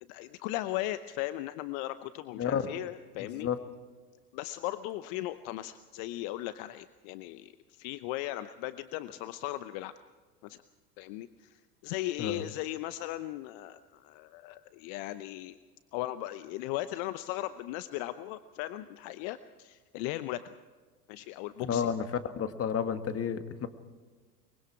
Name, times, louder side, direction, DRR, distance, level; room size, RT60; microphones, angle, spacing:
voice 1, 0.1-3.5 4.3-9.9 10.4-10.6 11.0-15.6 15.9-20.4 21.1-21.9, left 15 dB, 55° left, 13 dB, 0.9 m, -37 dB
voice 2, 2.4-2.7 3.2-3.6 12.2-12.4 21.6-22.0 22.4-23.7, left 7 dB, 30° left, 9 dB, 1.7 m, -31 dB
23.5 x 23.5 x 4.7 m, 1.4 s
hypercardioid pair, 90°, 47 cm